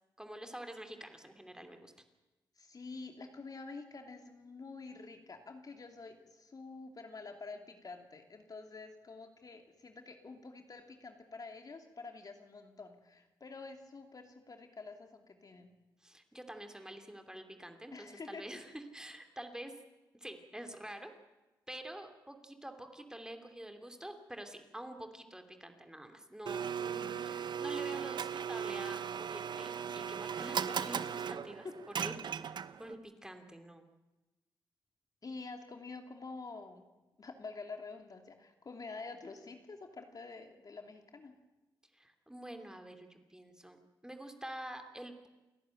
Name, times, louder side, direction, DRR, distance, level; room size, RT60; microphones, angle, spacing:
voice 1, 0.2-1.9 16.0-19.7 20.1-21.1 21.7-31.7 32.0-33.8 41.9-45.3, right 1 dB, 10° right, 6 dB, 2.9 m, -47 dB
voice 2, 2.6-15.7 17.9-18.4 35.2-36.9 37.2-41.4, left 3 dB, 50° left, 5 dB, 2.8 m, -48 dB
Domestic sounds home sounds, 26.5-33.0, right 7 dB, 65° right, 0.8 m, -37 dB
29.5 x 11.0 x 9.1 m, 1.1 s
cardioid pair, 55°, 8 cm